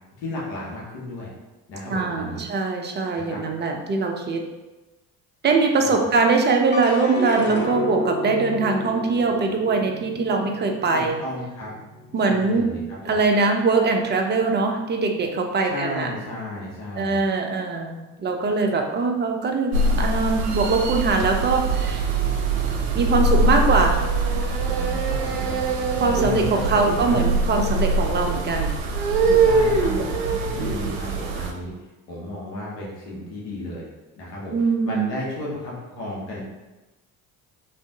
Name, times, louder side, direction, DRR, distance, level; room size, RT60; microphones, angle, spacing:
voice 1, 0.2-1.3 1.7-2.4 3.1-3.4 5.8-5.9 10.9-11.7 12.2-13.2 15.6-17.2 24.7-25.5 26.1-27.2 29.4-30.2 30.5-31.7 32.1-33.8 34.2-34.5 34.8-36.4, left 2 dB, 85° left, -5 dB, 1.0 m, -33 dB
voice 2, 1.9-4.4 5.4-11.2 12.1-12.7 13.1-16.1 17.0-22.1 22.9-24.0 26.0-28.7 34.5-35.1, right 3 dB, 25° right, 3 dB, 0.4 m, -22 dB
sound 1, 6.7-13.2 13.6-14.3, left 1 dB, 25° left, 0.6 m, -32 dB
sound 2, 19.7-31.5, right 3 dB, 70° right, 0.6 m, -23 dB
2.6 x 2.4 x 3.4 m, 1.1 s
hypercardioid pair, 50°, 48 cm